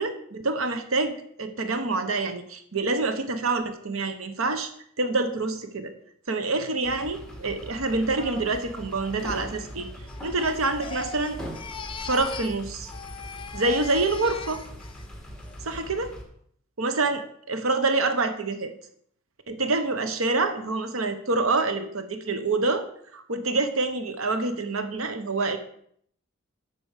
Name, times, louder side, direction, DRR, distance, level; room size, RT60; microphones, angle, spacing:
voice 1, 0.0-4.7 5.0-5.9 6.3-9.9 10.2-11.4 12.0-12.9 13.5-14.6 15.7-16.1 16.8-18.7 19.5-22.9 23.1-25.6, right 3 dB, 90° right, 9 dB, 1.1 m, -26 dB
sound 1, 6.8-16.2, equal, 5° left, 1.7 m, -41 dB
Crying sobbing, 10.1-12.6 12.8-15.0 15.4-15.8, left 5 dB, 25° left, 0.7 m, -40 dB
8.3 x 5.9 x 7.3 m, 0.66 s
head